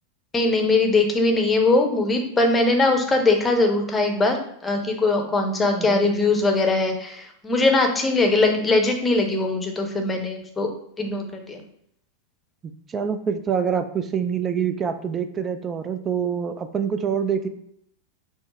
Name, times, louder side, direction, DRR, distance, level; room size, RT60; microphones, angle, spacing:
voice 1, 0.3-4.4 4.6-10.7 11.0-11.6, left 2 dB, 15° left, 3 dB, 0.8 m, -21 dB
voice 2, 5.7-6.0 12.9-17.5, right 7 dB, 25° right, 9 dB, 0.4 m, -25 dB
4.4 x 2.0 x 4.3 m, 0.72 s
figure-of-eight pair, 90°, 0 cm